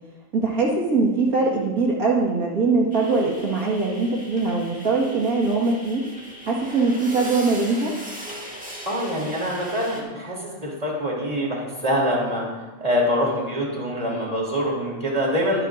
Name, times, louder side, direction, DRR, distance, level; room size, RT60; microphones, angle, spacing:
voice 1, 0.3-6.1 6.5-8.0, right 3 dB, 75° right, -2 dB, 2.2 m, -22 dB
sound 1, 2.9-10.0, equal, 5° right, 1.8 m, -39 dB
voice 2, 8.8-15.7, equal, 25° right, -3 dB, 3.2 m, -25 dB
22.5 x 10.0 x 2.6 m, 1.1 s
omnidirectional pair, 1.5 m